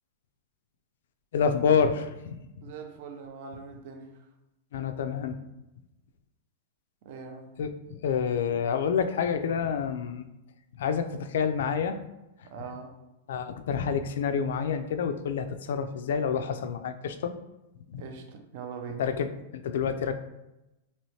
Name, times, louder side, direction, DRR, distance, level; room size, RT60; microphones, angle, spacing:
voice 1, 1.3-2.5 4.7-5.4 7.6-10.3 10.7-12.0 12.4-12.5 13.3-17.3 17.9-18.0 19.0-20.1, left 6 dB, 75° left, 9 dB, 0.3 m, -28 dB
voice 2, 2.6-4.2 7.0-7.6 12.4-12.9 18.0-19.1, right 5 dB, 50° right, 4 dB, 0.5 m, -42 dB
2.9 x 2.8 x 3.1 m, 0.95 s
supercardioid pair, 160°, 0 cm